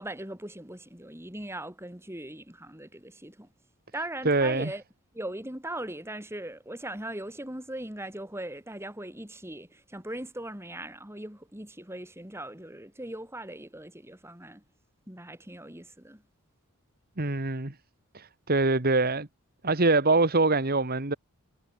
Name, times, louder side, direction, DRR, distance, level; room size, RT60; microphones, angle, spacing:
voice 1, 0.0-3.5 3.9-4.8 5.1-14.6 15.1-16.2, right 1 dB, 10° right, 3.8 m, -39 dB
voice 2, 4.2-4.7 17.2-17.7 18.1-19.3 19.6-21.1, right 3 dB, 40° right, 1.8 m, -24 dB
head